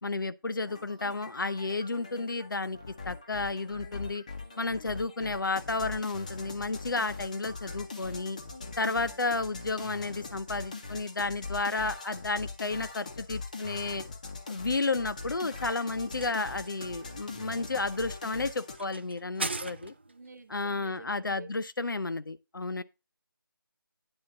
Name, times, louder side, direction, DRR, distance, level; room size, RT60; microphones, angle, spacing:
voice 1, 0.0-2.8 3.0-4.2 4.6-8.4 8.8-14.0 14.5-19.9 20.5-22.8, left 3 dB, 65° left, 0.6 m, -32 dB
sound 1, 0.7-18.8, left 3 dB, 20° left, 0.6 m, -42 dB
sound 2, 15.1-20.3, right 3 dB, 30° right, 0.4 m, -41 dB
voice 2, 20.1-21.5, right 3 dB, 50° right, 1.1 m, -49 dB
9.7 x 3.5 x 6.4 m
figure-of-eight pair, 165°, 12 cm